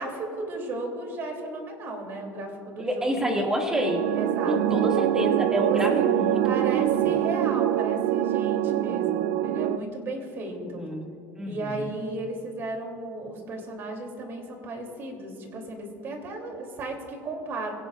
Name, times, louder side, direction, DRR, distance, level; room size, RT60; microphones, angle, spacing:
voice 1, 0.0-3.4 4.1-4.9 5.6-6.1 6.4-10.9 11.5-17.7, right 2 dB, 40° right, 2 dB, 3.0 m, -34 dB
voice 2, 2.8-4.0 4.5-7.2 10.7-11.1 11.4-11.9, equal, 10° right, 0 dB, 2.1 m, -28 dB
sound 1, 3.7-9.8, right 12 dB, 75° right, 0.4 m, -24 dB
24.0 x 17.5 x 2.5 m, 2.6 s
cardioid pair, 140°, 6 cm